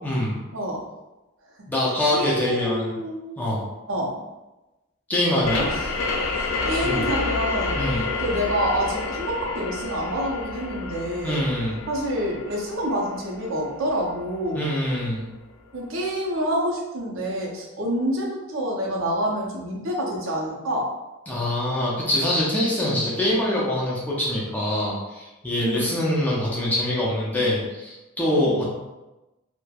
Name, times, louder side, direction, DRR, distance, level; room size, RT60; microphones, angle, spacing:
voice 1, 0.0-0.4 1.7-2.9 3.4-3.6 5.1-5.7 6.8-7.1 7.8-8.1 11.2-11.8 14.5-15.2 21.3-28.6, left 1 dB, 10° left, -6 dB, 0.5 m, -24 dB
voice 2, 0.5-0.9 2.1-3.4 3.9-4.2 5.5-6.0 6.3-7.8 8.2-11.4 11.9-14.6 15.7-20.9 25.6-25.9 28.4-28.6, equal, 70° right, -1 dB, 0.6 m, -27 dB
sound 1, 5.4-14.8, left 3 dB, 75° left, 0.4 m, -29 dB
3.0 x 2.1 x 2.3 m, 1.0 s
head